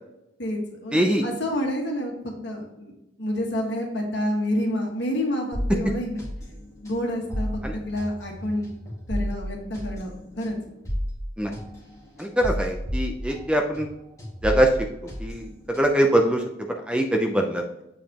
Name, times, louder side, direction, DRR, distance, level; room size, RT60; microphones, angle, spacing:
voice 1, 0.4-2.1 2.4-6.2 6.8-8.7 9.1-10.6, left 1 dB, 70° left, 1 dB, 1.6 m, -28 dB
voice 2, 0.9-1.2 7.6-7.7 11.4-11.5 12.2-13.9 14.4-14.7 15.2-16.4 16.9-17.6, right 1 dB, 5° right, 2 dB, 0.6 m, -22 dB
sound 1, 5.5-13.9 14.2-16.1, equal, 15° left, 1.9 m, -33 dB
7.3 x 4.9 x 2.9 m, 0.88 s
head